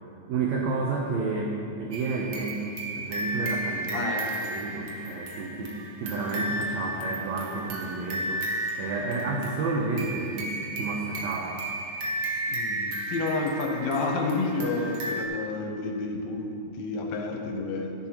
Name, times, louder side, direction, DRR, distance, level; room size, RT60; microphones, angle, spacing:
voice 1, 0.3-4.1 4.4-11.6, right 3 dB, 70° right, -1 dB, 1.9 m, -31 dB
sound 1, 1.9-15.3, right 1 dB, 85° right, 1.0 m, -34 dB
voice 2, 3.9-4.6 12.5-17.9, left 3 dB, 70° left, 1 dB, 2.0 m, -30 dB
12.5 x 10.5 x 3.0 m, 2.7 s
omnidirectional pair, 3.6 m